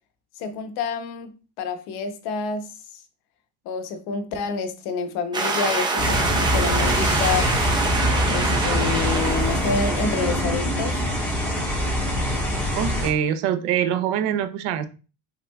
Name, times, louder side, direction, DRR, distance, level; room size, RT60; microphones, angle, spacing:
voice 1, 0.4-1.3 1.6-2.7 3.7-7.5 8.3-11.0 14.3-14.4, left 5 dB, 65° left, 0.9 m, -28 dB
sound 1, 5.3-10.4, right 3 dB, 10° right, 0.4 m, -26 dB
sound 2, 6.0-13.1, equal, 5° left, 1.4 m, -24 dB
voice 2, 12.8-14.9, right 9 dB, 70° right, 0.7 m, -24 dB
5.6 x 3.6 x 2.3 m
cardioid pair, 165°, 40 cm